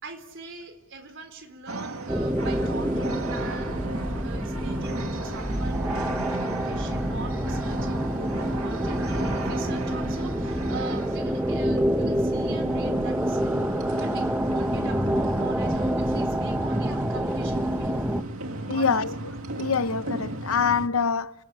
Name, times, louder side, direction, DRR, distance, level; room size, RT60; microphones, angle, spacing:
voice 1, 0.0-3.9 4.2-13.5 14.0-18.3 18.7-19.1, right 4 dB, 65° right, 4.1 m, -42 dB
sound 1, 1.7-20.9, right 2 dB, 90° right, 2.3 m, -36 dB
sound 2, 2.1-18.2, equal, 10° right, 1.1 m, -27 dB
voice 2, 18.7-19.2 19.6-21.3, left 5 dB, 90° left, 0.9 m, -25 dB
29.0 x 22.5 x 8.8 m
head